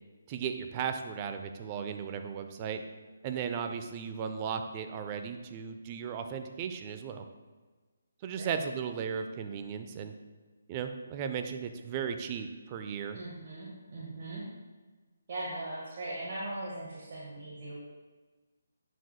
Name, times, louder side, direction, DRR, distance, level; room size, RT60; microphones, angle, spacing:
voice 1, 0.3-2.8 3.2-7.2 8.2-10.1 10.7-13.2, right 7 dB, 30° right, 7 dB, 0.5 m, -36 dB
voice 2, 13.1-14.4 15.3-17.7, right 2 dB, 45° right, -6 dB, 1.5 m, -39 dB
9.1 x 6.2 x 2.3 m, 1.3 s
figure-of-eight pair, 150°, 0 cm